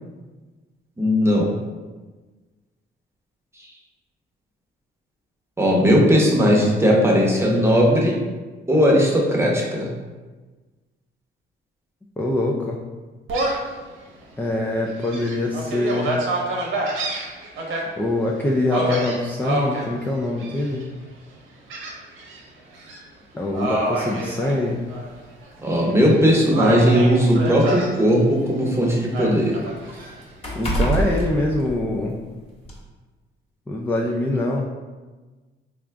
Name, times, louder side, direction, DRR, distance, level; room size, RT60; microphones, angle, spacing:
voice 1, 1.0-1.5 5.6-8.2 8.7-9.9 25.6-29.6, equal, 15° right, -2 dB, 0.8 m, -17 dB
voice 2, 12.2-12.8 14.4-16.2 18.0-20.9 23.3-24.9 29.9-30.1 30.5-32.2 33.7-34.7, left 2 dB, 10° left, -1 dB, 0.3 m, -24 dB
Gull seagull, 13.3-13.7 14.2-14.3 14.9-17.8 18.7-19.9 20.4-20.8 21.7-22.4 22.7-23.0 23.5-25.1 25.4-26.2 26.5-27.9 29.1-30.1, right 2 dB, 85° right, 0.8 m, -27 dB
sound 1, 23.6-23.8 24.8-24.9 25.4-25.5 26.5-28.4 28.8-32.3 32.6-32.8, right 2 dB, 30° left, 1.2 m, -28 dB
3.7 x 2.3 x 3.3 m, 1.3 s
cardioid pair, 90°, 20 cm